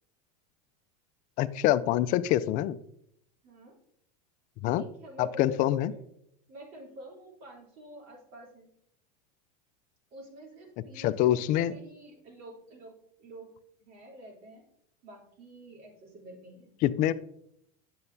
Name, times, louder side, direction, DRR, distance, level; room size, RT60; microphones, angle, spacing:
voice 1, 1.4-2.8 4.6-4.8 5.2-5.9 11.0-11.7 16.8-17.1, left 13 dB, 40° left, 13 dB, 0.4 m, -25 dB
voice 2, 3.4-3.8 4.6-6.0 6.5-8.7 10.1-13.5 13.8-14.6 15.0-16.7, equal, 50° right, -2 dB, 3.1 m, -48 dB
8.7 x 6.9 x 2.7 m, 0.74 s
supercardioid pair, 130°, 20 cm